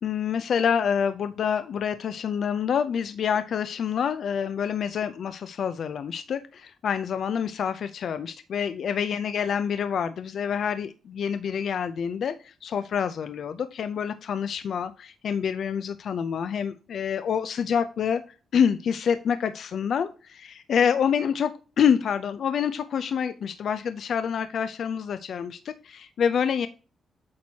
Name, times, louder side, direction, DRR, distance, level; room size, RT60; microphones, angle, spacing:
voice 1, 0.0-18.2 18.5-26.7, left 7 dB, 60° left, 11 dB, 0.4 m, -27 dB
8.4 x 6.2 x 2.8 m, 0.35 s
wide cardioid pair, 140°, 0 cm